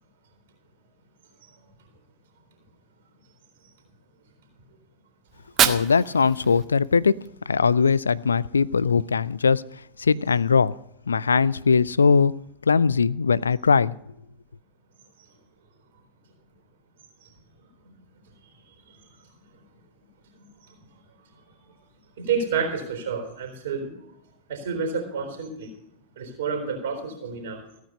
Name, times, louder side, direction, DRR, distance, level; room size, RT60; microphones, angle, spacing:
Fire, 5.3-7.3, right 9 dB, 30° right, 1.1 m, -27 dB
voice 1, 5.6-7.1 7.5-9.6 10.0-10.7 11.1-12.3 12.7-13.9, left 5 dB, 75° left, 0.4 m, -20 dB
voice 2, 22.2-23.9 24.5-25.7 26.2-27.6, right 5 dB, 55° right, 3.9 m, -29 dB
16.0 x 9.4 x 5.4 m
figure-of-eight pair, 90°, 0 cm